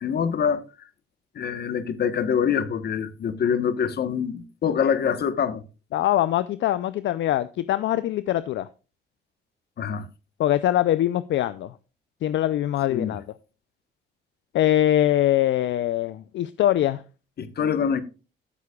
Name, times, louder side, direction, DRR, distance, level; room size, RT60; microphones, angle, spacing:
voice 1, 0.0-0.6 1.3-5.6 9.8-10.0 12.9-13.2 17.4-18.0, left 7 dB, 55° left, 1.2 m, -25 dB
voice 2, 5.9-8.7 10.4-11.7 12.2-13.2 14.5-17.0, left 12 dB, 70° left, 0.5 m, -23 dB
13.5 x 8.1 x 2.3 m
cardioid pair, 90°, 20 cm